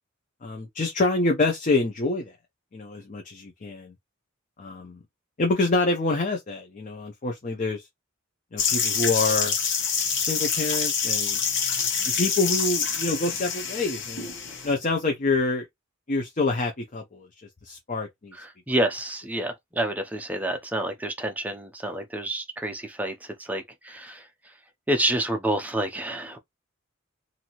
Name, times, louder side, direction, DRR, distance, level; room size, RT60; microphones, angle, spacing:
voice 1, 0.4-2.3 2.7-3.9 4.6-5.0 5.4-7.9 8.5-9.5 10.2-11.4 12.2-14.3 14.6-15.7 16.1-17.3 17.6-18.3, left 3 dB, 40° left, 0.6 m, -26 dB
sound 1, 8.6-14.7, left 6 dB, 60° left, 1.0 m, -26 dB
voice 2, 18.3-24.5 24.9-26.4, right 1 dB, 10° right, 0.5 m, -29 dB
2.6 x 2.6 x 2.9 m
head